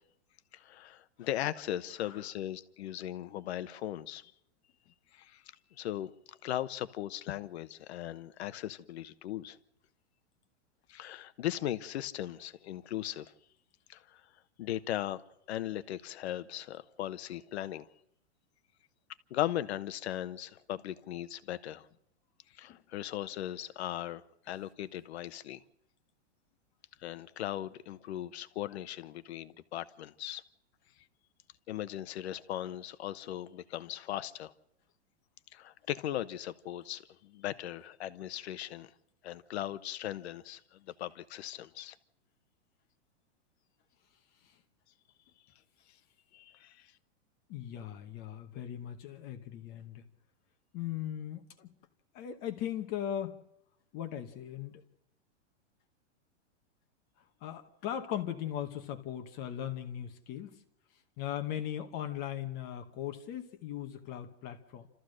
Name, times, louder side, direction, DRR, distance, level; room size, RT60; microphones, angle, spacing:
voice 1, 0.5-4.3 5.1-5.4 5.8-9.6 10.9-13.3 13.9-14.2 14.6-15.2 15.5-17.9 19.3-21.9 22.6-25.6 27.0-30.4 31.7-34.5 35.5-38.9 39.2-40.6 41.0-41.9 46.3-46.9, left 12 dB, 60° left, 13 dB, 1.2 m, -38 dB
voice 2, 47.5-50.0 50.7-51.7 52.1-53.4 53.9-54.8 57.4-60.6 61.2-64.9, left 10 dB, 25° left, 7 dB, 1.1 m, -39 dB
28.5 x 14.0 x 6.4 m, 0.81 s
supercardioid pair, 165°, 36 cm